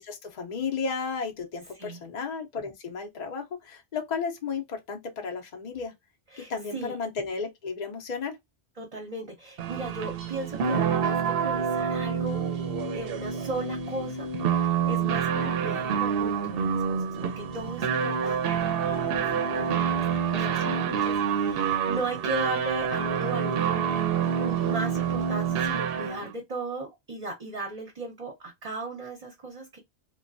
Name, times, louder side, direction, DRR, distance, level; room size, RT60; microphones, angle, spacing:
voice 1, 0.0-5.9 6.4-8.4 20.3-20.7, left 5 dB, 45° left, 0.7 m, -34 dB
voice 2, 6.3-6.9 8.8-12.4 12.9-29.8, right 2 dB, 40° right, 0.8 m, -37 dB
sound 1, 9.6-26.3, right 7 dB, 65° right, 0.8 m, -27 dB
3.0 x 2.3 x 2.5 m
omnidirectional pair, 1.1 m